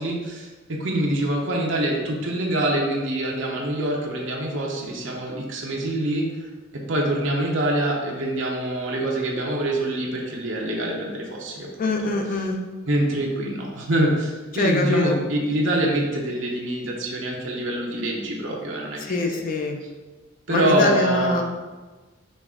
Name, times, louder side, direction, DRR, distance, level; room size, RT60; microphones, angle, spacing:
voice 1, 0.0-6.5 6.7-11.7 12.0-12.1 12.9-19.4 20.5-21.4, right 1 dB, 65° right, -2 dB, 0.7 m, -25 dB
voice 2, 11.8-12.6 14.5-15.2 19.0-19.8 20.5-21.4, left 3 dB, 40° left, 2 dB, 0.5 m, -23 dB
5.2 x 2.5 x 3.5 m, 1.3 s
head